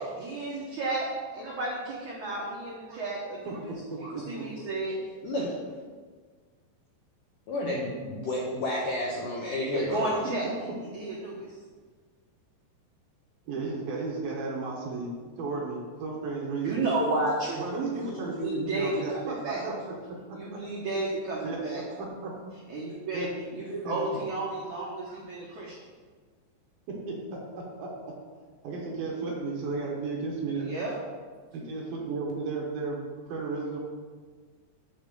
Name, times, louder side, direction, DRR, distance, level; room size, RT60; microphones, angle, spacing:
voice 1, 0.2-1.1 1.3-3.7 4.0-4.9 9.7-10.5 10.9-11.5 16.6-17.7 18.1-19.6 20.3-21.8 22.7-25.8 30.5-30.9, right 2 dB, 85° right, -4 dB, 1.7 m, -32 dB
voice 2, 3.5-4.5 13.5-15.1 15.4-16.8 17.6-19.9 21.4-22.3 23.1-23.3 23.8-24.1 26.9-28.1 28.6-30.7 31.5-33.8, right 3 dB, 65° right, -2 dB, 2.7 m, -34 dB
voice 3, 7.5-10.2, left 1 dB, 75° left, -4 dB, 1.9 m, -31 dB
7.1 x 5.4 x 6.7 m, 1.5 s
omnidirectional pair, 5.3 m